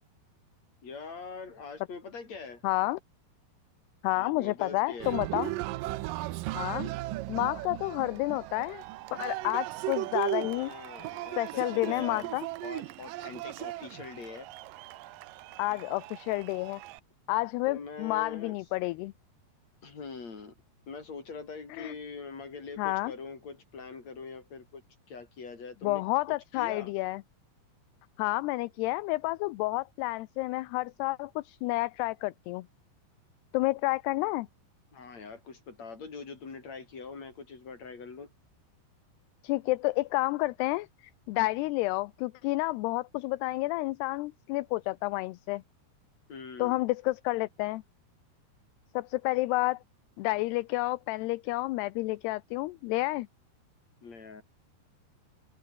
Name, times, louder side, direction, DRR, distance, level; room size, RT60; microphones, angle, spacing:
voice 1, 0.8-2.6 4.1-5.2 10.5-12.4 12.6-14.5 15.7-15.8 17.7-18.6 19.8-20.5 20.9-24.8 25.1-26.9 34.9-38.3 46.3-46.8 54.0-54.4, left 4 dB, 40° left, 6.2 m, -43 dB
voice 2, 2.6-3.0 4.0-5.5 6.5-6.9 7.3-8.8 9.1-10.7 11.4-12.5 15.6-16.8 17.3-19.1 21.8-21.9 22.8-23.1 25.8-27.2 28.2-32.7 33.5-34.5 39.4-40.9 41.3-45.6 46.6-47.8 48.9-49.8 50.2-53.3, left 20 dB, 80° left, 2.7 m, -30 dB
Cheering, 5.0-17.0, right 17 dB, 85° right, 1.9 m, -37 dB
open air
omnidirectional pair, 5.0 m